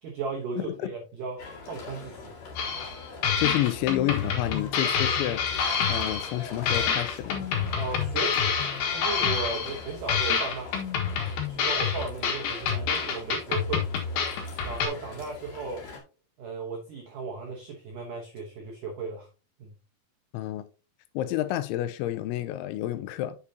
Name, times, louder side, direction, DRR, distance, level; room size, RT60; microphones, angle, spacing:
voice 1, 0.0-2.7 7.8-8.5 8.9-10.9 11.5-13.9 14.7-15.8 16.4-19.3 19.6-19.7, right 4 dB, 80° right, 1.9 m, -36 dB
voice 2, 0.6-0.9 3.4-5.4 5.9-7.5 20.3-20.6 21.1-23.4, left 14 dB, 85° left, 3.0 m, -29 dB
sound 1, 1.4-16.0, left 4 dB, 45° left, 2.8 m, -43 dB
sound 2, 2.6-3.0 3.2-6.4 6.7-9.8 10.1-14.9, left 6 dB, 65° left, 3.2 m, -27 dB
8.4 x 6.7 x 2.8 m
omnidirectional pair, 5.4 m